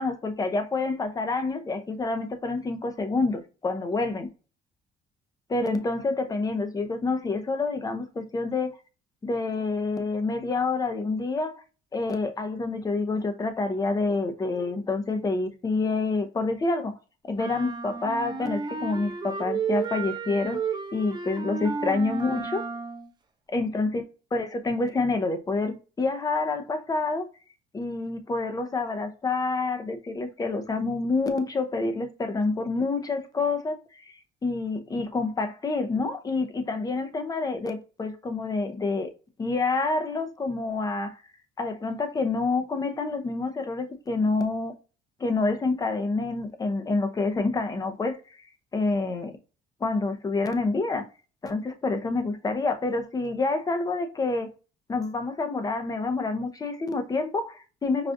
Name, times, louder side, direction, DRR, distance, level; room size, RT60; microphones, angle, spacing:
voice 1, 0.0-4.3 5.5-8.7 9.2-11.5 11.9-16.9 17.2-20.6 20.9-22.6 23.5-24.0 24.3-27.3 27.7-39.1 39.4-41.1 41.6-44.7 45.2-48.2 48.7-49.3 49.8-51.0 51.4-54.5 54.9-58.1, left 3 dB, 20° left, 0.6 m, -27 dB
sound 1, 17.3-23.1, right 5 dB, 25° right, 0.7 m, -32 dB
4.9 x 2.3 x 2.6 m
cardioid pair, 110°, 17 cm